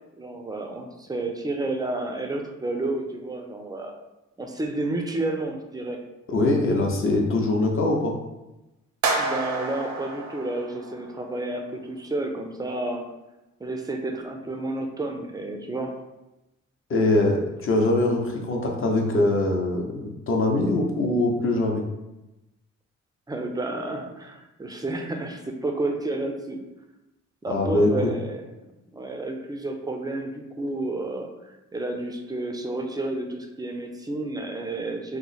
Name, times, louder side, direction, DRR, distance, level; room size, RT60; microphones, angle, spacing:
voice 1, 0.2-4.0 4.4-6.0 9.2-13.1 13.6-16.0 23.3-26.6 27.4-28.4 28.9-35.2, right 2 dB, 15° right, 4 dB, 0.4 m, -31 dB
voice 2, 6.3-8.1 16.9-21.8 27.5-28.1, left 2 dB, 45° left, 1 dB, 0.7 m, -22 dB
sound 1, 9.0-11.3, right 3 dB, 75° right, 0.6 m, -29 dB
3.0 x 2.0 x 4.0 m, 0.97 s
cardioid pair, 105°, 29 cm